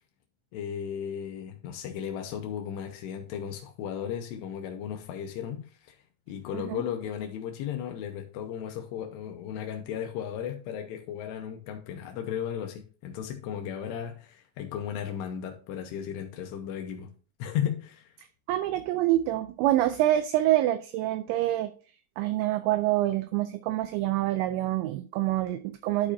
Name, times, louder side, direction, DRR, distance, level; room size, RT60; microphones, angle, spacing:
voice 1, 0.5-6.0 6.3-17.1 17.4-18.1, left 9 dB, 85° left, 2.4 m, -35 dB
voice 2, 18.5-21.7 22.2-26.1, right 14 dB, 85° right, 2.6 m, -26 dB
12.0 x 5.0 x 2.6 m
omnidirectional pair, 5.7 m